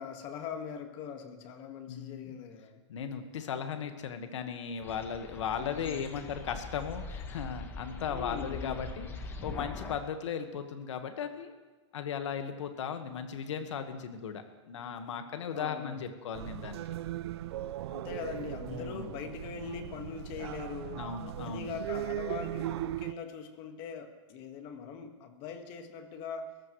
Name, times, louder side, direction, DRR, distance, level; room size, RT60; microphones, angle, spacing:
voice 1, 0.0-2.8 5.6-6.4 8.1-8.9 15.5-16.0 17.9-21.1 21.4-26.6, left 6 dB, 35° left, 6 dB, 1.7 m, -42 dB
voice 2, 1.9-2.4 2.9-11.5 11.9-16.8 18.7-19.1 20.9-21.7, left 7 dB, 85° left, 7 dB, 1.6 m, -37 dB
sound 1, 4.8-10.0, left 3 dB, 15° left, 1.1 m, -42 dB
sound 2, 16.3-23.1, right 13 dB, 60° right, 0.5 m, -38 dB
29.5 x 14.5 x 3.2 m, 1.2 s
supercardioid pair, 160°, 15 cm